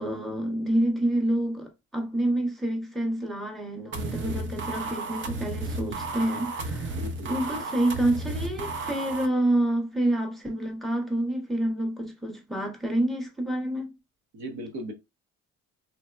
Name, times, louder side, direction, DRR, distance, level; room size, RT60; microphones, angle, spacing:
voice 1, 0.0-7.0 7.3-14.0, right 1 dB, ahead, 0.7 m, -28 dB
sound 1, 3.9-9.3, right 2 dB, 40° right, 0.6 m, -33 dB
voice 2, 6.9-7.3 14.3-14.9, right 1 dB, 75° right, 0.9 m, -37 dB
3.0 x 2.1 x 2.2 m
cardioid pair, 90°, 30 cm